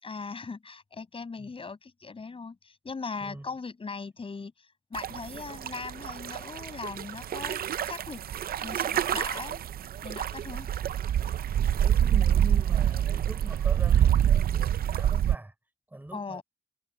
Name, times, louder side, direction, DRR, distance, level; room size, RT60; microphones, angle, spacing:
voice 1, 0.0-4.5 4.9-8.2 8.6-9.6 10.0-10.7 16.1-16.4, left 4 dB, 35° left, 6.4 m, -39 dB
sound 1, 4.9-15.4, right 10 dB, 80° right, 0.5 m, -26 dB
voice 2, 11.4-15.5 15.9-16.4, right 1 dB, 10° right, 6.4 m, -43 dB
wide cardioid pair, 135°, 15 cm